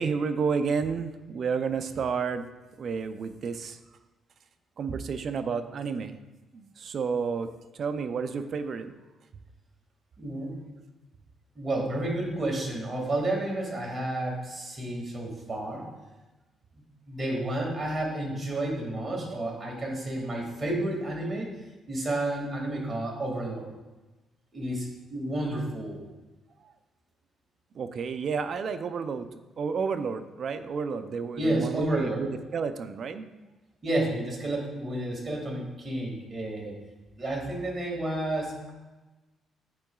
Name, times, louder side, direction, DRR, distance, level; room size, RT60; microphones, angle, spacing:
voice 1, 0.0-2.5 2.8-3.8 4.8-6.2 6.5-7.5 7.7-8.9 27.7-29.3 29.6-33.3, right 5 dB, 55° right, 10 dB, 0.5 m, -31 dB
voice 2, 10.2-10.5 11.6-15.8 17.1-21.5 21.9-23.7 24.5-26.0 31.4-32.2 33.8-36.7 37.2-38.7, right 1 dB, 30° right, -1 dB, 2.0 m, -31 dB
10.5 x 4.6 x 2.3 m, 1.1 s
cardioid pair, 90°, 0 cm